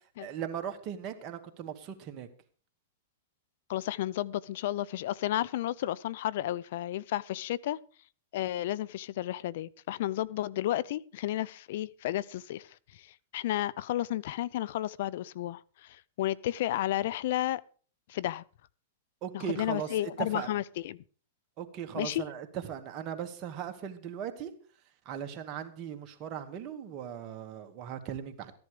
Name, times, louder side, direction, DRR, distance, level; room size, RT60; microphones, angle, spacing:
voice 1, 0.2-2.3 19.2-20.5 21.6-24.5 25.1-28.5, right 9 dB, 40° right, 2.1 m, -38 dB
voice 2, 3.7-7.8 8.3-17.6 18.1-18.4 19.3-21.0 21.9-22.2, left 14 dB, 60° left, 0.5 m, -32 dB
15.0 x 10.5 x 5.1 m
hypercardioid pair, 120°, 0 cm